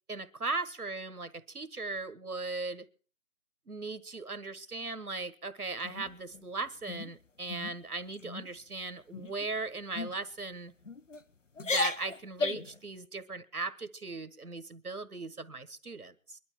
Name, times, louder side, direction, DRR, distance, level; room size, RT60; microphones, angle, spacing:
voice 1, 0.1-2.9 3.7-10.7 11.6-16.4, right 3 dB, 85° right, 14 dB, 1.4 m, -38 dB
sound 1, 5.8-6.4 6.9-7.1 7.5-7.8 8.1-8.5 9.1-9.5 9.9-10.1 10.8-11.2 11.6-12.8, left 3 dB, 55° left, 0.9 m, -35 dB
22.0 x 12.0 x 4.5 m, 0.38 s
figure-of-eight pair, 165°, 44 cm